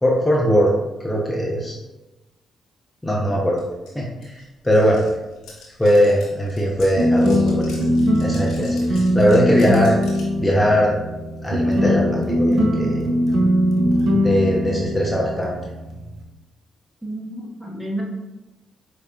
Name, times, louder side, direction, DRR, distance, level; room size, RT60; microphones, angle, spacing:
voice 1, 0.0-0.7 1.0-1.8 3.0-3.6 3.9-5.0 5.8-7.8 8.2-9.9 10.4-10.9 11.4-13.1 14.2-15.6, equal, 15° left, -3 dB, 0.7 m, -20 dB
sound 1, 3.6-3.7 3.9-10.3, left 3 dB, 75° left, 1.0 m, -44 dB
sound 2, 6.9-16.2, equal, 65° right, 0.6 m, -21 dB
voice 2, 17.0-18.0, right 1 dB, 15° right, -1 dB, 1.0 m, -30 dB
4.7 x 2.9 x 2.3 m, 1.0 s
hypercardioid pair, 50°, 0 cm